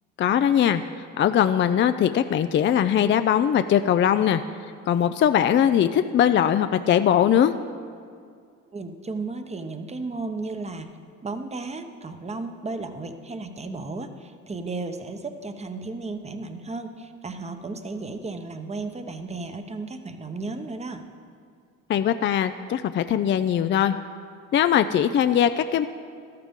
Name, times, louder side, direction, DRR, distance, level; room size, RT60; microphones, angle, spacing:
voice 1, 0.2-4.4 4.9-7.5 21.9-24.0 24.5-25.9, left 9 dB, 40° left, 10 dB, 0.4 m, -21 dB
voice 2, 8.7-10.9 11.2-21.0, right 3 dB, 20° right, 8 dB, 0.9 m, -34 dB
13.0 x 12.5 x 3.7 m, 2.3 s
cardioid pair, 85°, 31 cm